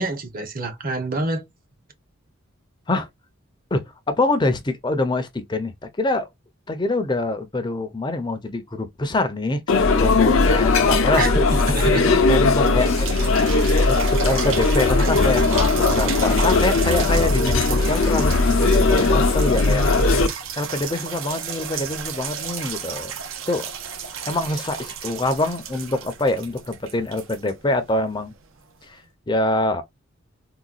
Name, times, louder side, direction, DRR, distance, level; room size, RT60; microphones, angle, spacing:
voice 1, 0.0-1.4 11.2-12.1, right 2 dB, 45° right, 0.8 m, -27 dB
voice 2, 3.7-6.3 6.7-11.5 12.3-13.3 13.9-19.9 20.6-23.1 23.5-23.7 24.2-28.3 28.9-29.0 29.3-29.8, left 2 dB, 20° left, 0.5 m, -25 dB
sound 1, 9.7-20.3, left 3 dB, 70° left, 0.6 m, -18 dB
sound 2, 12.5-28.2 28.8-28.9, right 6 dB, 75° right, 0.7 m, -32 dB
3.8 x 2.2 x 2.4 m
head